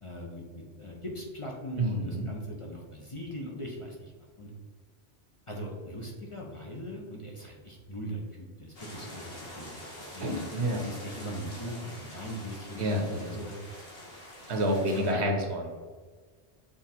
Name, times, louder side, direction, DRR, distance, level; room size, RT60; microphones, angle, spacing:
voice 1, 0.0-4.5 5.5-13.5 14.8-15.2, equal, 30° left, -2 dB, 0.8 m, -40 dB
voice 2, 1.8-2.3 10.2-10.8 12.8-13.4 14.5-15.7, equal, 70° right, 2 dB, 1.2 m, -29 dB
sound 1, 8.7-15.1, left 1 dB, 55° left, 1.9 m, -46 dB
6.1 x 3.6 x 4.3 m, 1.5 s
omnidirectional pair, 1.2 m